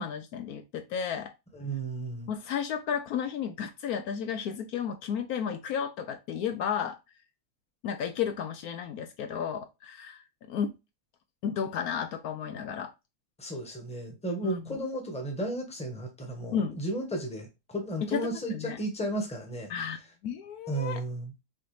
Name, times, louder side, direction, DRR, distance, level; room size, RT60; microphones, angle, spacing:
voice 1, 0.0-1.3 2.3-7.0 7.8-10.7 11.4-12.9 14.4-14.6 16.5-16.7 18.1-18.8 19.7-20.0 20.2-21.0, left 7 dB, 75° left, 1.0 m, -33 dB
voice 2, 1.5-2.3 13.4-19.7 20.7-21.3, right 1 dB, 5° left, 1.0 m, -34 dB
5.8 x 2.7 x 3.1 m
omnidirectional pair, 1.7 m